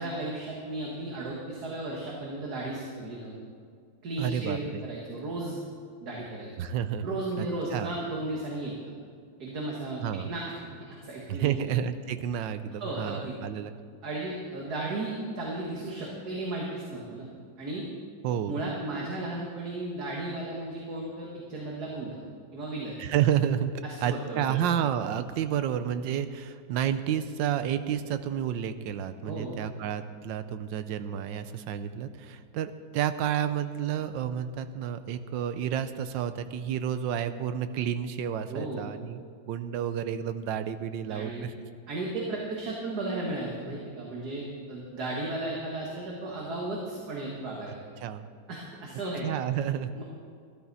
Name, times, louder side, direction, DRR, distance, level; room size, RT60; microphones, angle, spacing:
voice 1, 0.0-3.3 4.0-5.6 6.0-6.5 7.0-8.7 9.4-10.4 11.0-11.6 12.8-13.3 14.0-17.3 17.6-17.8 18.5-22.2 22.5-23.0 23.8-24.5 29.2-29.6 38.5-38.8 41.1-41.4 41.9-47.7 48.5-49.3 49.9-50.0, right 2 dB, 50° right, -3 dB, 2.0 m, -35 dB
voice 2, 4.2-4.9 6.6-7.1 7.4-7.5 7.7-7.9 10.0-10.3 11.3-13.7 18.2-18.6 23.0-41.5 48.0-48.3 49.2-49.9, right 9 dB, 75° right, 11 dB, 1.2 m, -30 dB
13.5 x 13.0 x 4.1 m, 2.1 s
omnidirectional pair, 2.2 m